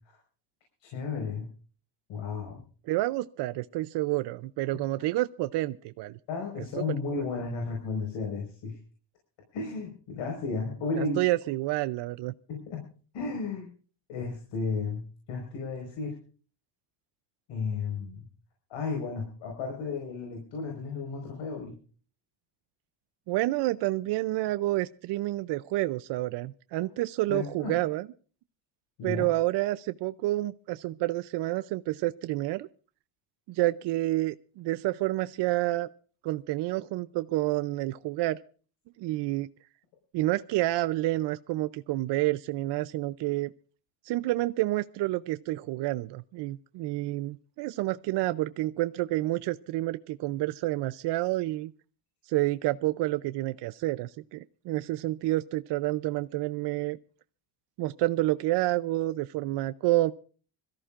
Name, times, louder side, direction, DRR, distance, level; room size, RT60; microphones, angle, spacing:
voice 1, 0.8-1.5 2.1-2.6 6.3-8.8 9.5-11.2 12.5-12.8 13.1-13.7 14.1-16.2 17.5-18.3 18.7-21.7 27.3-27.8 29.0-29.2, left 4 dB, 85° left, 1 dB, 4.9 m, -33 dB
voice 2, 2.9-6.2 6.6-6.8 10.9-12.3 23.3-28.1 29.0-32.7 33.5-35.9 36.2-38.4 39.0-39.5 40.1-43.5 44.0-51.7 52.3-57.0 57.8-60.1, right 17 dB, 70° right, 12 dB, 0.6 m, -29 dB
26.0 x 14.0 x 2.5 m, 0.40 s
cardioid pair, 180°, 44 cm